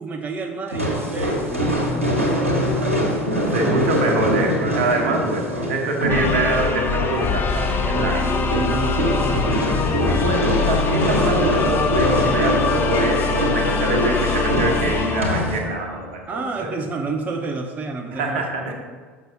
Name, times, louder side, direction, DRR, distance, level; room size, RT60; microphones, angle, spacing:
voice 1, 0.0-3.0 3.6-3.9 7.9-9.8 16.3-18.5, right 3 dB, 20° right, 3 dB, 0.6 m, -30 dB
sound 1, 0.7-15.6, equal, 85° right, 1.4 m, -24 dB
voice 2, 3.5-8.2 10.1-16.8 18.1-18.7, right 2 dB, 60° right, 2 dB, 1.3 m, -25 dB
sound 2, 6.1-16.1, left 5 dB, 30° left, 0.9 m, -23 dB
6.8 x 6.0 x 5.0 m, 1.5 s
figure-of-eight pair, 70°, 7 cm